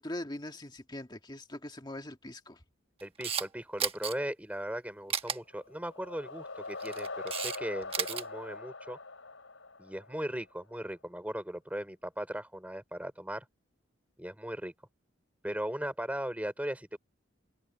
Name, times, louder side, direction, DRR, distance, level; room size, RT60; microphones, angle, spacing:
voice 1, 0.0-2.6, left 1 dB, 20° left, 1.9 m, -41 dB
voice 2, 3.0-9.0 9.8-13.4 14.2-14.7 15.4-17.0, equal, 5° right, 5.0 m, -38 dB
Camera, 3.0-3.5 3.8-4.1 5.1-5.4 6.7-7.6 7.8-8.2, right 7 dB, 30° right, 1.2 m, -33 dB
sound 1, 5.5-10.4, left 3 dB, 80° left, 5.6 m, -42 dB
head